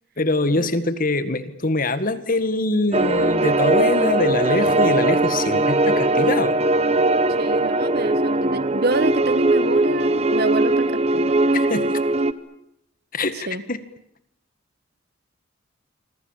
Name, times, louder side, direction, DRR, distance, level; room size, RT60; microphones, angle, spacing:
voice 1, 0.2-6.6 11.5-12.0 13.1-13.8, left 2 dB, 40° left, 12 dB, 1.7 m, -23 dB
sound 1, 2.9-12.3, right 2 dB, 30° right, 1.0 m, -20 dB
voice 2, 7.4-11.4 13.5-13.6, right 3 dB, 50° right, 15 dB, 1.2 m, -27 dB
27.5 x 24.5 x 7.3 m, 0.77 s
head